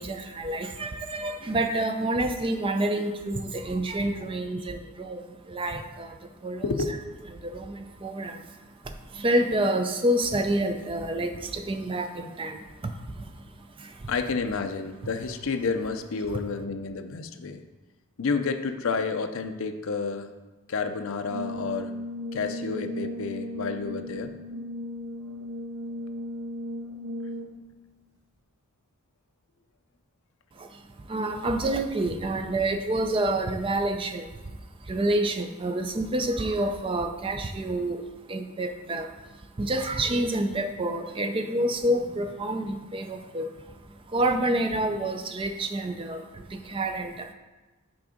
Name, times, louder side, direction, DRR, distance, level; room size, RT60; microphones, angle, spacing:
voice 1, 0.0-6.6 7.3-14.1 30.5-47.3, right 1 dB, 25° right, 6 dB, 0.4 m, -29 dB
voice 2, 6.6-7.0 14.1-17.6 18.2-20.3 20.7-21.9 22.3-24.3, left 4 dB, 60° left, 7 dB, 0.5 m, -30 dB
Brass instrument, 21.3-27.7, left 1 dB, 80° right, 0.7 m, -36 dB
6.0 x 3.8 x 4.9 m, 1.2 s
head